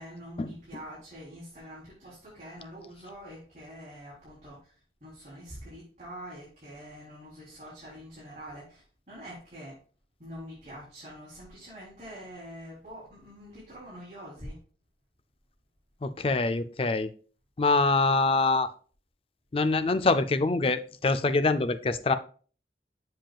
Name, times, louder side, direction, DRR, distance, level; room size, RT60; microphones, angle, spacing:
voice 1, 0.0-4.5 5.0-8.8 9.1-9.7 10.2-14.5, equal, 40° right, -8 dB, 3.4 m, -45 dB
voice 2, 16.0-17.1 17.6-18.7 19.5-22.1, left 3 dB, 30° left, 11 dB, 0.4 m, -25 dB
7.6 x 7.3 x 2.3 m, 0.40 s
head